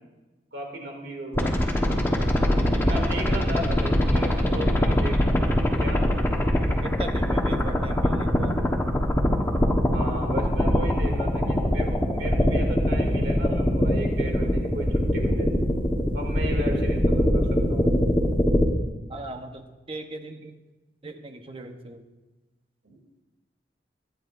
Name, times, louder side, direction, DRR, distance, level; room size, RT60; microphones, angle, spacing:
voice 1, 0.5-1.9 2.8-5.5 5.8-6.1 9.9-15.5 16.1-17.9 22.8-23.0, right 1 dB, 85° right, 1 dB, 2.6 m, -35 dB
sound 1, 1.3-18.7, equal, 15° left, 1.2 m, -22 dB
voice 2, 2.7-3.4 6.8-8.7 19.1-20.6 21.0-22.0, right 2 dB, 30° right, 6 dB, 1.0 m, -38 dB
23.5 x 10.0 x 2.6 m, 1.2 s
head